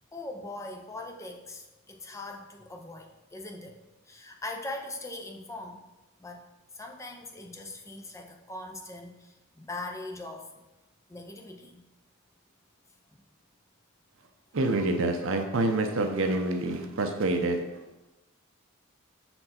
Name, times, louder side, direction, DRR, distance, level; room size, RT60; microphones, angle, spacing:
voice 1, 0.1-3.8 4.1-5.8 6.2-6.4 6.7-10.6 11.1-11.8 13.1-13.2, left 2 dB, 15° left, 2 dB, 0.6 m, -41 dB
voice 2, 14.5-17.6, right 2 dB, 65° right, 5 dB, 0.7 m, -27 dB
6.5 x 4.4 x 4.3 m, 1.0 s
head